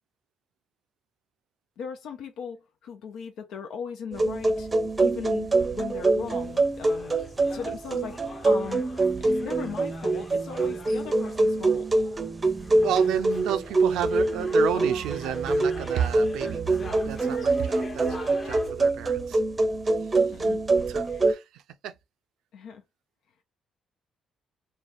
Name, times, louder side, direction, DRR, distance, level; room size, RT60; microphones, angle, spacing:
voice 1, 1.8-4.7 5.0-7.1 7.5-11.9 20.2-20.6 21.1-21.3 22.5-22.8, left 6 dB, 80° left, 0.5 m, -38 dB
sound 1, 4.1-21.3, right 2 dB, 25° right, 0.6 m, -25 dB
sound 2, 5.9-18.7, left 1 dB, 35° left, 1.0 m, -43 dB
voice 2, 12.8-19.4 20.8-21.9, right 10 dB, 85° right, 0.4 m, -31 dB
3.2 x 2.2 x 2.5 m
cardioid pair, 90°, 0 cm